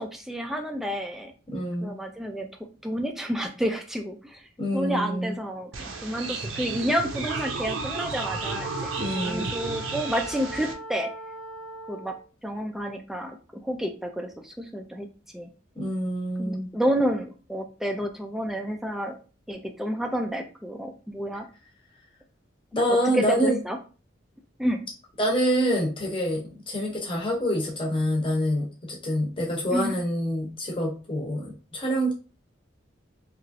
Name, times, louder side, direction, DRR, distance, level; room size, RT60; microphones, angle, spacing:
voice 1, 0.0-1.3 1.8-2.5 2.8-4.5 4.7-5.7 6.0-11.1 11.9-12.1 12.4-15.1 15.3-15.5 16.4-19.2 19.5-21.5 22.9-23.8 24.6-24.8 29.7-29.9, equal, ahead, 4 dB, 0.3 m, -30 dB
voice 2, 1.5-1.9 4.6-5.3 9.0-9.5 15.7-16.7 22.7-23.6 25.2-32.1, equal, 25° left, -2 dB, 0.8 m, -26 dB
sound 1, 5.7-10.7, right 4 dB, 80° right, 0.5 m, -33 dB
Wind instrument woodwind instrument, 8.1-12.3, equal, 85° left, 0.5 m, -39 dB
2.9 x 2.4 x 2.6 m, 0.35 s
head